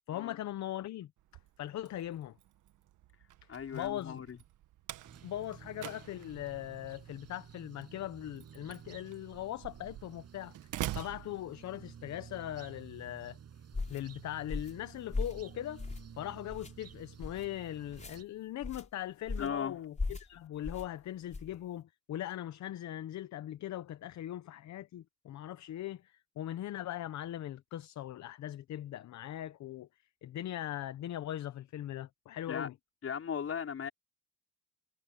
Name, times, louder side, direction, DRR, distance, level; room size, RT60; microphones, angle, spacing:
voice 1, 0.1-1.1 1.6-2.3 3.7-4.2 5.2-10.5 10.9-13.4 13.9-15.9 16.2-29.9 30.2-32.7, left 12 dB, 65° left, 0.9 m, -40 dB
Slam, 1.2-12.1, right 14 dB, 85° right, 1.5 m, -46 dB
voice 2, 3.5-4.4 19.4-19.8 32.5-32.7 33.0-33.9, left 7 dB, 50° left, 5.0 m, -37 dB
sound 1, 5.0-18.2, right 8 dB, 55° right, 7.9 m, -53 dB
sound 2, 13.7-14.0 14.5-14.8 15.1-15.4 15.8-16.1 16.5-16.7 17.2-17.5 17.9-18.2 18.6-18.9 19.3-19.6 20.0-20.3 20.6-20.9 21.3-21.5, left 3 dB, 25° left, 4.8 m, -37 dB
cardioid pair, 90°, 30 cm